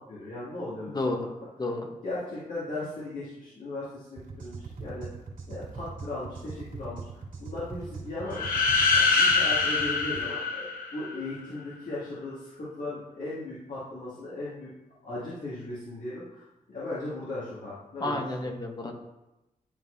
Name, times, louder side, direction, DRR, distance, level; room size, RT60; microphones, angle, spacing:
voice 1, 0.1-0.9 2.0-5.1 5.5-7.1 7.4-8.6 9.0-14.7 15.0-18.5, left 2 dB, 65° left, -9 dB, 2.2 m, -37 dB
voice 2, 0.9-1.2 1.6-1.9 18.0-18.9, left 2 dB, 30° left, 3 dB, 1.1 m, -30 dB
sound 1, 4.2-10.3, right 4 dB, 70° right, 2.2 m, -41 dB
sound 2, 8.3-11.2, left 4 dB, 85° left, 0.9 m, -24 dB
11.5 x 4.0 x 2.7 m, 0.96 s
cardioid pair, 100°, 14 cm